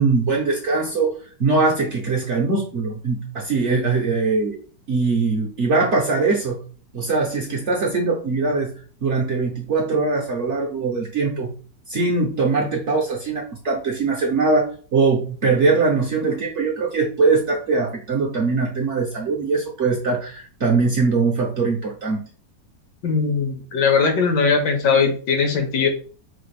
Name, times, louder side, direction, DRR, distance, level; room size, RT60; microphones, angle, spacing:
voice 1, 0.0-4.6 4.9-6.6 6.9-8.7 9.0-11.5 11.9-22.2, right 4 dB, 60° right, -1 dB, 0.8 m, -21 dB
voice 2, 23.0-25.9, left 5 dB, 75° left, 5 dB, 1.3 m, -19 dB
4.1 x 2.5 x 3.2 m, 0.40 s
omnidirectional pair, 1.9 m